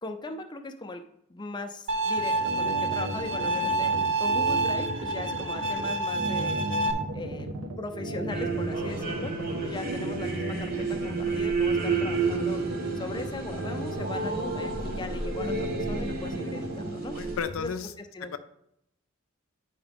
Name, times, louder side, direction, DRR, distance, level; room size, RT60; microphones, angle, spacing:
voice 1, 0.0-1.0 1.3-6.6 7.1-7.5 7.8-9.3 9.6-12.6 13.0-17.2 17.6-18.3, left 2 dB, 20° left, 5 dB, 0.5 m, -39 dB
Bowed string instrument, 1.9-6.9, right 2 dB, 60° right, 0.7 m, -28 dB
sound 1, 2.2-16.9, right 1 dB, 85° right, 1.3 m, -36 dB
sound 2, 8.3-17.4, right 4 dB, 45° right, 1.5 m, -31 dB
voice 2, 17.1-17.9 18.3-18.4, left 6 dB, 70° left, 10 dB, 0.5 m, -33 dB
9.0 x 4.8 x 3.6 m, 0.77 s
head